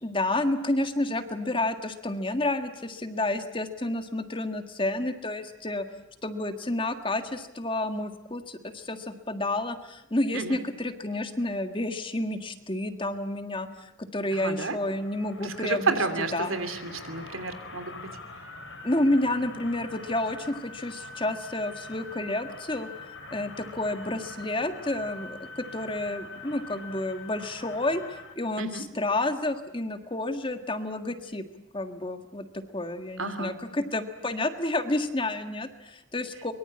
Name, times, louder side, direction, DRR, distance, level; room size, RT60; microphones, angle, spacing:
voice 1, 0.0-5.9 6.2-16.0 16.3-16.6 18.8-31.5 31.7-36.5, left 1 dB, 25° left, 8 dB, 1.7 m, -30 dB
voice 2, 14.3-14.8 15.4-18.1 28.6-28.8 33.2-33.5, right 4 dB, 85° right, 9 dB, 2.9 m, -31 dB
sound 1, 14.7-28.3, left 3 dB, 65° left, 7.6 m, -44 dB
24.0 x 23.0 x 8.6 m, 0.90 s
head